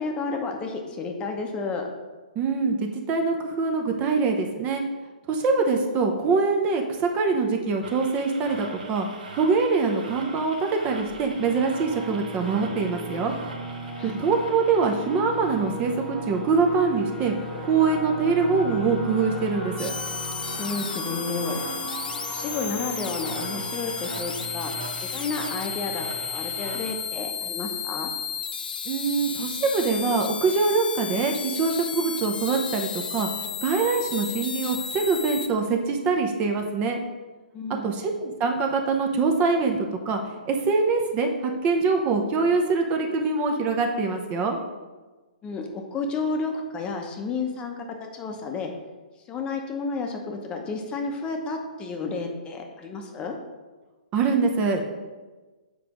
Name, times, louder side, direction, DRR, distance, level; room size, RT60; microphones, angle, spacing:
voice 1, 0.0-1.9 14.0-14.2 20.6-21.6 22.3-24.7 25.0-28.1 37.5-37.9 45.4-48.7 49.3-53.4, left 4 dB, 20° left, 3 dB, 0.8 m, -31 dB
voice 2, 2.4-4.8 5.3-9.1 9.4-13.3 14.0-17.3 17.6-19.9 28.9-33.3 33.6-37.0 37.8-40.2 40.5-44.6 54.1-54.9, right 4 dB, 25° right, 3 dB, 0.7 m, -24 dB
sound 1, 7.8-27.0, right 2 dB, 75° right, 1.2 m, -43 dB
sound 2, 11.3-26.6, right 1 dB, 5° left, 1.2 m, -37 dB
sound 3, 19.8-35.5, left 7 dB, 75° left, 0.5 m, -33 dB
7.6 x 4.9 x 3.0 m, 1.3 s
hypercardioid pair, 135°, 5 cm